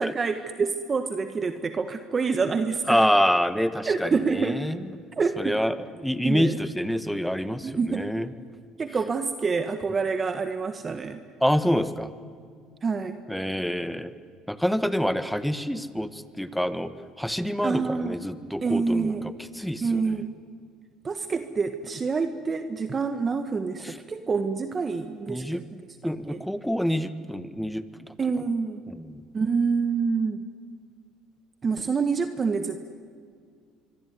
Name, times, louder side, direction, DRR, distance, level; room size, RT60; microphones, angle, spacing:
voice 1, 0.0-3.1 3.9-4.6 5.2-5.6 6.2-6.6 7.6-8.1 8.8-11.2 12.8-13.2 17.6-18.2 18.6-19.3 19.8-20.3 21.0-25.6 26.3-26.4 28.2-28.8 29.3-30.4 31.6-32.8, right 5 dB, 30° right, 9 dB, 1.4 m, -27 dB
voice 2, 2.9-4.8 5.4-8.3 11.4-12.1 13.3-14.1 14.5-16.9 17.2-20.0 25.3-25.6 26.0-28.1 29.0-29.2, equal, ahead, 12 dB, 1.4 m, -26 dB
25.5 x 23.5 x 9.6 m, 2.1 s
supercardioid pair, 105°, 0 cm